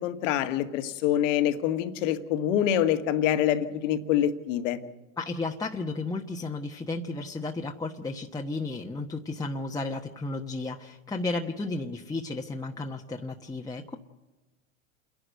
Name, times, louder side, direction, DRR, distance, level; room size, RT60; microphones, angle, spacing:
voice 1, 0.0-4.8, left 10 dB, 65° left, 8 dB, 1.8 m, -26 dB
voice 2, 5.2-14.0, left 3 dB, 10° left, 0 dB, 1.2 m, -33 dB
28.5 x 11.5 x 8.1 m, 1.2 s
hypercardioid pair, 100°, 40 cm